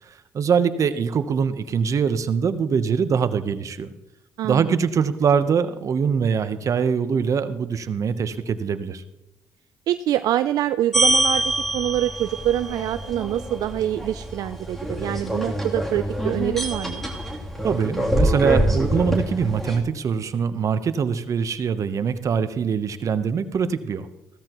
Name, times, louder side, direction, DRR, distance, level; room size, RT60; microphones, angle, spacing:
voice 1, 0.1-3.9 4.4-9.0 17.6-24.1, right 6 dB, 55° right, 12 dB, 0.9 m, -23 dB
voice 2, 4.4-4.7 9.9-17.0, right 12 dB, 75° right, 12 dB, 0.4 m, -25 dB
sound 1, 10.9-19.8, right 1 dB, 5° left, 3.0 m, -25 dB
16.0 x 13.5 x 3.0 m, 0.95 s
supercardioid pair, 65°, 6 cm